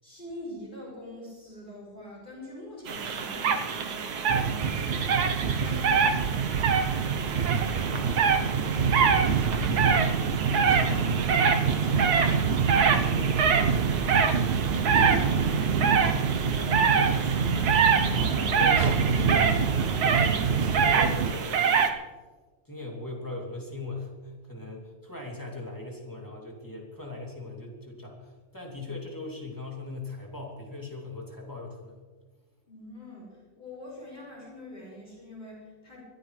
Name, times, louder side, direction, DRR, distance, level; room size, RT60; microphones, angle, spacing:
voice 1, 0.0-5.0 5.6-6.2 11.7-15.5 32.7-36.0, left 1 dB, 30° left, -6 dB, 5.6 m, -44 dB
sound 1, 2.9-21.9, right 6 dB, 85° right, 1.5 m, -26 dB
sound 2, 4.3-21.3, right 6 dB, 55° right, 0.7 m, -27 dB
voice 2, 7.7-8.5 9.0-11.4 16.0-19.6 20.0-21.7 22.6-32.0, left 2 dB, 10° left, -2 dB, 2.8 m, -39 dB
24.0 x 13.5 x 3.3 m, 1.3 s
omnidirectional pair, 1.6 m